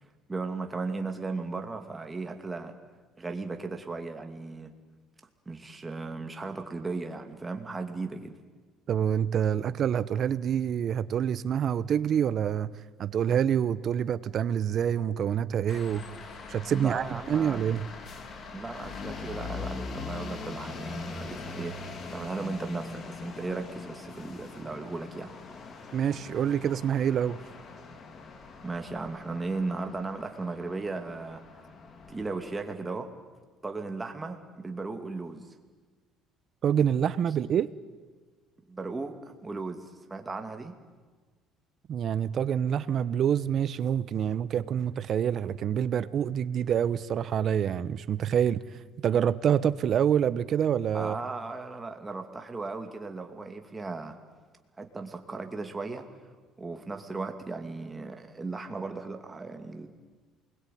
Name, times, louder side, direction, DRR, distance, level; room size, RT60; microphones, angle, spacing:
voice 1, 0.3-2.7 3.2-4.7 5.5-8.4 16.7-17.6 18.5-25.3 28.6-31.4 32.1-33.1 33.6-35.5 38.7-40.7 50.9-54.2 54.8-56.1 56.6-59.9, right 3 dB, 15° right, 2.6 m, -36 dB
voice 2, 8.9-12.7 13.0-16.0 16.5-17.9 25.9-27.4 36.6-37.7 41.9-48.6 49.0-51.2, right 9 dB, 45° right, 1.0 m, -26 dB
sound 1, 15.7-32.6, left 4 dB, 40° left, 2.9 m, -42 dB
28.0 x 21.5 x 9.4 m
cardioid pair, 130°, 0 cm